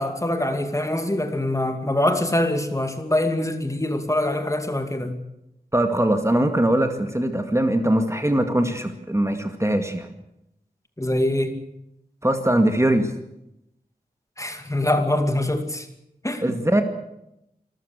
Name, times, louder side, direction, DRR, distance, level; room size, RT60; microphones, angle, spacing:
voice 1, 0.0-5.1 11.0-11.6 14.4-15.9 16.2-16.6, left 1 dB, 20° left, 6 dB, 2.5 m, -24 dB
voice 2, 5.7-10.1 12.2-13.1 16.4-16.8, right 1 dB, 15° right, 6 dB, 2.1 m, -21 dB
26.5 x 14.0 x 8.3 m, 0.83 s
wide cardioid pair, 80°, 16 cm